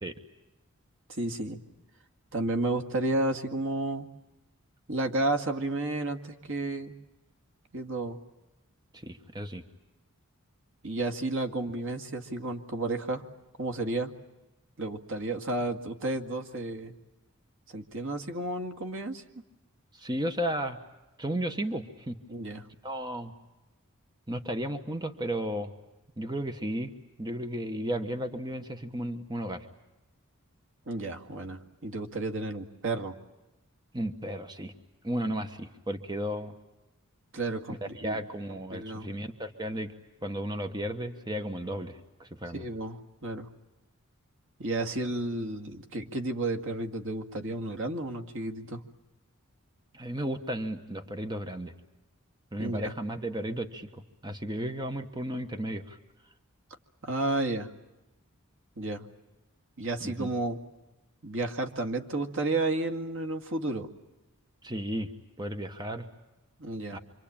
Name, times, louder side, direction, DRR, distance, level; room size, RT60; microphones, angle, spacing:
voice 1, 1.1-1.6 2.3-4.1 4.9-6.9 7.7-8.2 10.8-13.2 13.6-14.1 14.8-16.9 17.7-19.2 22.3-22.6 30.9-33.1 37.3-38.2 38.7-39.1 42.5-43.5 44.6-48.8 52.6-52.9 57.0-57.7 58.8-59.1 59.8-60.6 61.2-63.9 66.6-67.0, right 2 dB, 65° right, 5 dB, 2.2 m, -32 dB
voice 2, 8.9-9.6 19.9-20.8 21.2-22.2 22.8-23.3 24.3-25.7 26.2-26.9 27.2-29.7 33.9-34.7 35.0-36.5 37.7-39.9 40.2-42.6 49.9-51.7 52.5-56.0 60.0-60.3 64.6-65.1 65.4-66.1 66.9-67.0, right 1 dB, 20° right, 7 dB, 1.3 m, -34 dB
26.5 x 25.5 x 8.8 m, 1.0 s
head